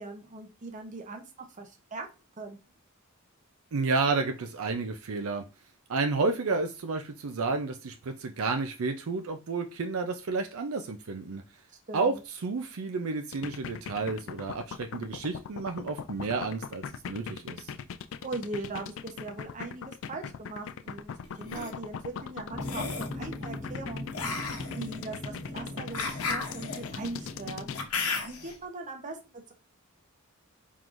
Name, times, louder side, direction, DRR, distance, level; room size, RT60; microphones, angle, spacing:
voice 1, 0.0-2.1 2.4-2.6 11.9-12.2 18.2-27.7 28.1-29.5, right 3 dB, 35° right, 4 dB, 0.8 m, -40 dB
voice 2, 3.7-5.4 5.9-11.4 11.9-12.1 12.4-17.7, right 4 dB, 70° right, 6 dB, 0.5 m, -31 dB
sound 1, 13.3-27.8, left 7 dB, 60° left, 0.4 m, -39 dB
sound 2, 21.2-21.7 22.6-23.2 24.1-28.5, left 4 dB, 85° left, 0.9 m, -35 dB
sound 3, 22.5-27.9, left 1 dB, 10° left, 1.0 m, -40 dB
4.6 x 3.7 x 2.5 m, 0.32 s
head